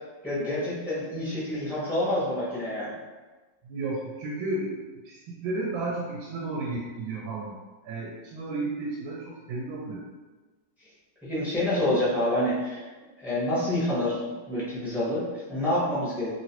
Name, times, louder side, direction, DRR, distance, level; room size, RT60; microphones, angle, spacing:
voice 1, 0.2-2.9 11.2-12.8 13.2-16.3, left 1 dB, ahead, -10 dB, 0.7 m, -27 dB
voice 2, 3.6-4.7 5.0-7.6 7.8-10.0, right 2 dB, 85° right, -3 dB, 1.3 m, -33 dB
3.0 x 2.9 x 2.9 m, 1.3 s
omnidirectional pair, 2.1 m